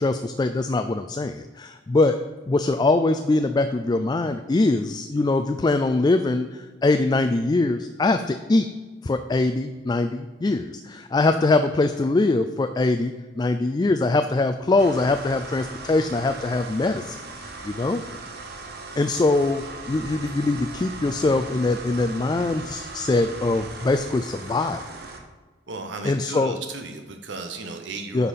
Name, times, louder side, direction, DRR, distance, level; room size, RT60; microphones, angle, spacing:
voice 1, 0.0-2.2 2.5-8.7 9.0-18.0 19.0-24.8 26.0-26.6 28.1-28.3, left 2 dB, 25° left, 8 dB, 0.3 m, -23 dB
sound 1, 14.8-25.2, right 3 dB, 60° right, 1.1 m, -38 dB
voice 2, 25.7-28.3, right 3 dB, 85° right, 6 dB, 0.9 m, -35 dB
10.0 x 5.6 x 4.1 m, 1.4 s
head